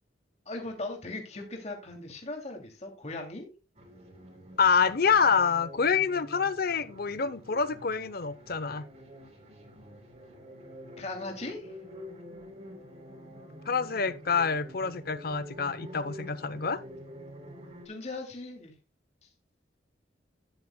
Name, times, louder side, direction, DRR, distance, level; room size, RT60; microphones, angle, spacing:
voice 1, 0.5-3.5 11.0-11.7 17.8-18.7 19.2-19.3, left 2 dB, 40° left, 2.7 m, -38 dB
sound 1, 3.7-17.9, equal, 40° right, 3.5 m, -47 dB
voice 2, 4.6-8.9 13.7-16.8, left 6 dB, 55° left, 0.8 m, -27 dB
12.5 x 10.5 x 2.2 m
head